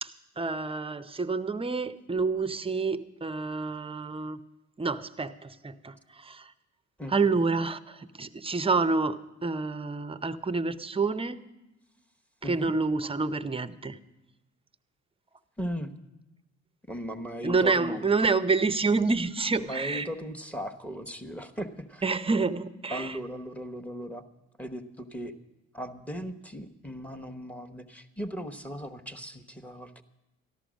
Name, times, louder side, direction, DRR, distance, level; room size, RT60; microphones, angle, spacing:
voice 1, 0.0-4.4 4.8-6.5 7.1-11.4 12.4-14.0 17.4-20.1 22.0-23.2, right 4 dB, 20° right, 12 dB, 0.6 m, -28 dB
voice 2, 12.4-12.7 15.6-15.9 16.9-18.1 19.6-22.0 22.9-24.2 24.6-25.3 25.7-30.0, equal, 5° left, 7 dB, 0.9 m, -37 dB
14.0 x 11.0 x 6.2 m, 0.99 s
cardioid pair, 90°, 30 cm